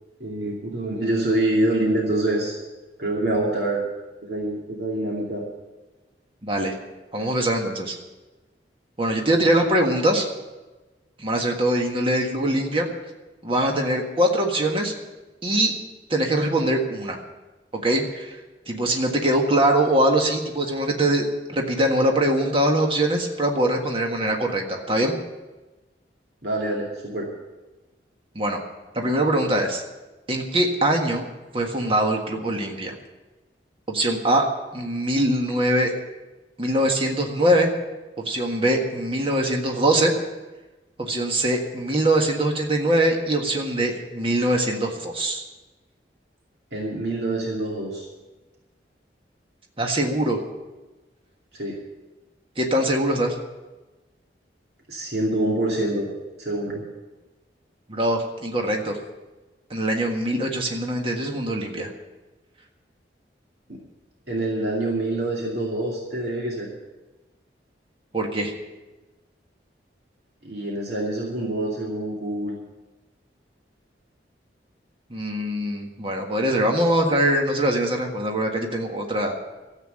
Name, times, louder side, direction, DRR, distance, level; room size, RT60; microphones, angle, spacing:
voice 1, 0.2-2.6 3.0-3.9 4.2-5.4 26.4-27.3 46.7-48.1 51.5-51.8 54.9-56.1 56.4-56.8 63.7-63.8 64.3-66.7 70.4-72.5, right 1 dB, 60° right, -3 dB, 2.6 m, -26 dB
voice 2, 6.4-6.8 7.1-8.0 9.0-10.3 11.2-12.8 13.4-14.9 15.4-15.8 16.1-17.2 17.7-18.4 18.7-25.1 28.3-28.6 28.9-29.8 30.3-31.2 31.5-32.9 33.9-35.9 36.6-37.7 38.2-40.1 41.0-45.4 49.8-50.4 52.6-53.4 57.9-59.0 59.7-61.9 68.1-68.5 75.1-79.3, right 1 dB, 30° right, 2 dB, 1.6 m, -22 dB
13.5 x 8.2 x 9.0 m, 1.1 s
head